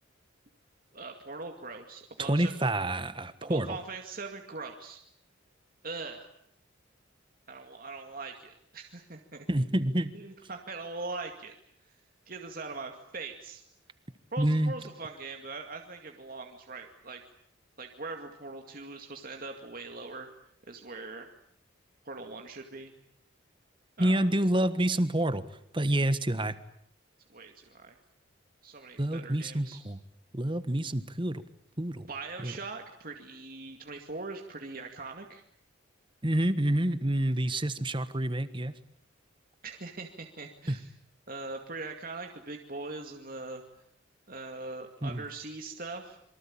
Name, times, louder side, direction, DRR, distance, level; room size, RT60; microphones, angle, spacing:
voice 1, 0.9-2.5 3.4-5.0 5.8-6.3 7.5-9.5 10.1-11.5 11.8-11.9 12.3-13.6 14.3-17.2 17.8-20.3 20.7-21.3 22.1-22.9 24.0-24.2 27.3-28.0 28.6-29.8 32.1-35.4 39.6-40.9 41.3-43.6 44.3-46.2, right 3 dB, 45° right, 3 dB, 2.3 m, -41 dB
voice 2, 2.2-3.8 9.5-10.1 14.4-14.7 24.0-25.4 25.7-26.6 29.0-30.0 30.3-31.4 31.8-32.1 32.4-32.5 36.2-38.7 40.7-40.8 45.0-45.2, right 1 dB, 25° right, 12 dB, 1.5 m, -28 dB
27.0 x 24.0 x 8.8 m, 0.71 s
head